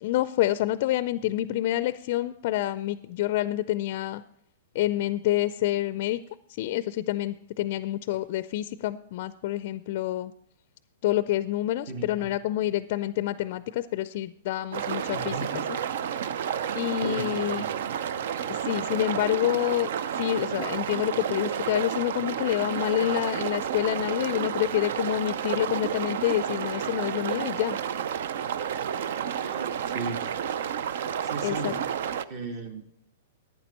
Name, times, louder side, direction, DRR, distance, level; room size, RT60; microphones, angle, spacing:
voice 1, 0.0-4.2 4.7-6.2 6.5-10.3 11.0-15.3 16.8-17.7 18.5-19.9 20.2-27.8 31.4-31.7, left 14 dB, 55° left, 15 dB, 0.4 m, -27 dB
voice 2, 11.9-12.3 15.1-15.5 17.0-17.7 29.4-30.3 31.2-31.8 32.3-32.8, right 3 dB, 45° right, 4 dB, 1.6 m, -36 dB
sound 1, 14.7-32.2, right 8 dB, 65° right, 0.5 m, -31 dB
11.5 x 8.9 x 4.2 m, 0.72 s
hypercardioid pair, 120°, 0 cm